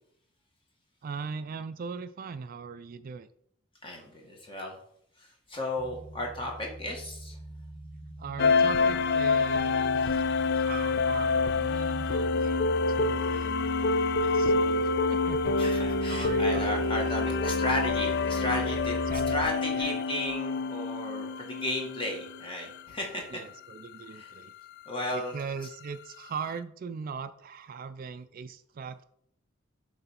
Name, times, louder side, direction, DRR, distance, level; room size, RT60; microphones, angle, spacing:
voice 1, 1.0-3.3 8.2-13.7 14.2-15.6 16.1-17.4 19.1-20.0 23.3-24.5 25.1-29.0, right 5 dB, 45° right, 11 dB, 0.3 m, -40 dB
voice 2, 3.8-4.8 5.2-7.4 15.6-19.0 19.3-23.2 24.1-24.3 24.8-25.4, left 1 dB, 25° left, 0 dB, 1.7 m, -34 dB
sound 1, 5.8-19.5, right 1 dB, 10° right, 1.1 m, -40 dB
Electric Dream Ambient, 8.4-22.5, left 4 dB, 55° left, 0.3 m, -27 dB
7.7 x 3.3 x 5.7 m, 0.69 s
head